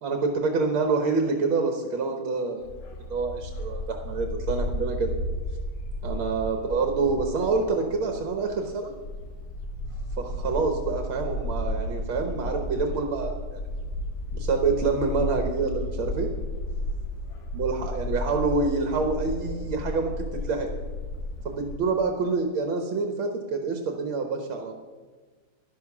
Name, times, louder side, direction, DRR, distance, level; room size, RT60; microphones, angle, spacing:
voice 1, 0.0-2.6 3.1-5.1 6.0-8.9 10.2-13.3 14.3-16.3 17.5-20.7 21.5-24.8, right 4 dB, 75° right, 4 dB, 1.9 m, -27 dB
Bark, 2.6-21.7, left 1 dB, 65° left, 1.8 m, -33 dB
11.5 x 11.0 x 6.0 m, 1.4 s
omnidirectional pair, 2.3 m